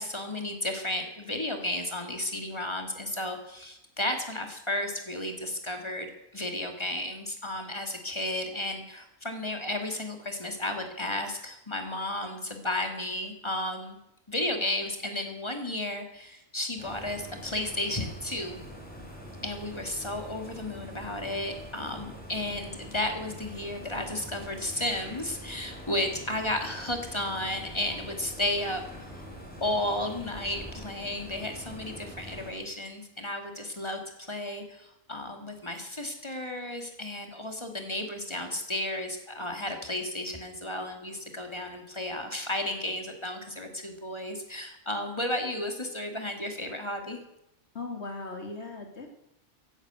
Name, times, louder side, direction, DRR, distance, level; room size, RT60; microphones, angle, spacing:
voice 1, 0.0-14.0 14.3-18.6 19.4-28.8 29.1-29.3 29.6-47.2, left 1 dB, 25° left, 5 dB, 2.3 m, -33 dB
sound 1, 16.8-32.5, equal, 10° left, 4.2 m, -44 dB
voice 2, 47.7-49.1, left 3 dB, 70° left, 4 dB, 2.6 m, -38 dB
15.0 x 11.5 x 8.1 m, 0.85 s
omnidirectional pair, 1.2 m